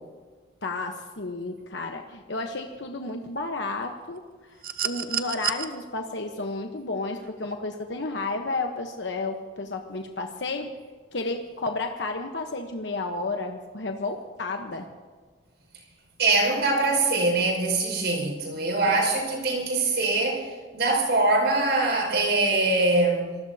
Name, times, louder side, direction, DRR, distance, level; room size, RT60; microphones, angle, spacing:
voice 1, 0.6-4.2 4.5-10.7 11.1-14.9, left 3 dB, 75° left, 4 dB, 1.1 m, -32 dB
sound 1, 4.6-5.7 7.2-7.3, right 10 dB, 50° right, 0.7 m, -29 dB
voice 2, 16.2-23.3, right 2 dB, 70° right, 1 dB, 5.4 m, -23 dB
26.5 x 19.5 x 2.8 m, 1.4 s
head